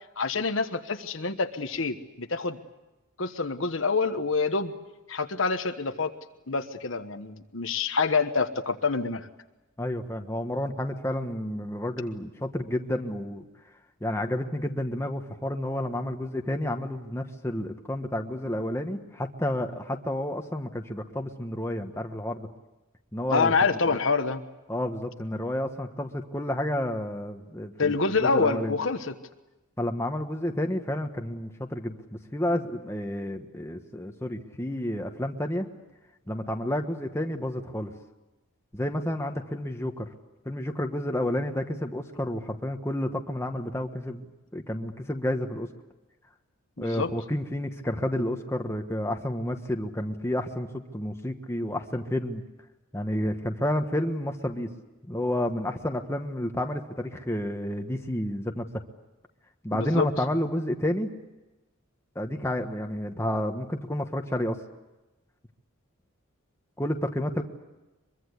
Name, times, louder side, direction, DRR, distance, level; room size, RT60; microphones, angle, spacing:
voice 1, 0.2-2.6 3.2-4.7 5.1-6.1 6.5-9.3 23.3-24.4 27.8-29.1 46.8-47.1 59.7-60.1, left 4 dB, 65° left, 8 dB, 1.3 m, -26 dB
voice 2, 9.8-13.4 14.0-22.5 23.1-23.5 23.9-24.0 24.7-28.8 29.8-35.7 36.3-37.9 38.7-40.1 40.4-45.7 46.8-52.4 52.9-54.7 55.0-58.6 59.6-61.1 62.1-64.6 66.8-67.4, left 1 dB, 10° left, 4 dB, 1.3 m, -30 dB
23.5 x 23.0 x 8.2 m, 1.1 s
head